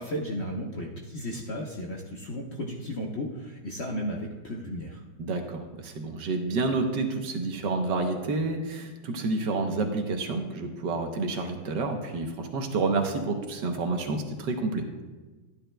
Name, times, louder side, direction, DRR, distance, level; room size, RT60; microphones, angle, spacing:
voice 1, 0.0-5.0, equal, 50° left, -1 dB, 0.9 m, -34 dB
voice 2, 5.2-14.9, right 3 dB, 70° right, 4 dB, 1.5 m, -29 dB
12.5 x 10.0 x 2.2 m, 1.2 s
omnidirectional pair, 2.0 m